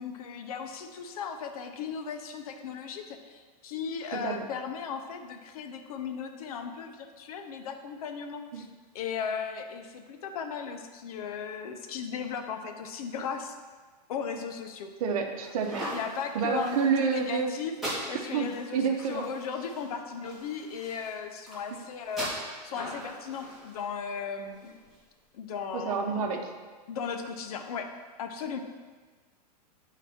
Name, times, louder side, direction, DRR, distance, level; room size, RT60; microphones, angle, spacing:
voice 1, 0.0-8.7 8.9-13.6 14.1-15.0 15.9-17.7 18.1-22.3 22.6-24.8 25.3-26.3 26.9-28.6, left 6 dB, 60° left, 6 dB, 0.8 m, -36 dB
voice 2, 4.1-4.4 8.5-8.6 15.0-15.8 16.3-17.5 18.3-19.2 25.7-26.5, right 5 dB, 55° right, 4 dB, 1.0 m, -28 dB
sound 1, 15.4-25.0, equal, ahead, 2.0 m, -41 dB
9.1 x 4.1 x 4.3 m, 1.4 s
supercardioid pair, 160°, 21 cm